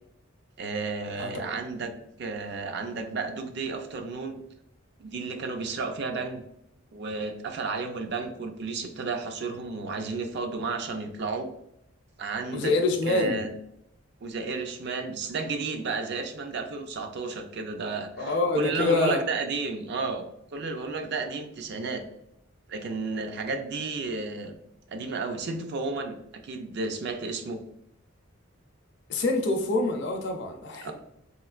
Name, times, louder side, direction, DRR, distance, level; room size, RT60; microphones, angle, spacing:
voice 1, 0.6-1.9 2.2-4.4 5.0-6.4 6.9-11.5 12.2-12.7 13.0-13.5 14.2-20.2 20.5-22.0 22.7-24.5 24.9-26.2 26.4-27.6 30.8-30.9, right 3 dB, 55° right, 6 dB, 0.4 m, -32 dB
voice 2, 1.2-1.5 12.5-13.4 18.2-19.2 29.1-30.9, left 2 dB, 60° left, 3 dB, 0.5 m, -26 dB
3.1 x 3.0 x 2.4 m, 0.80 s
head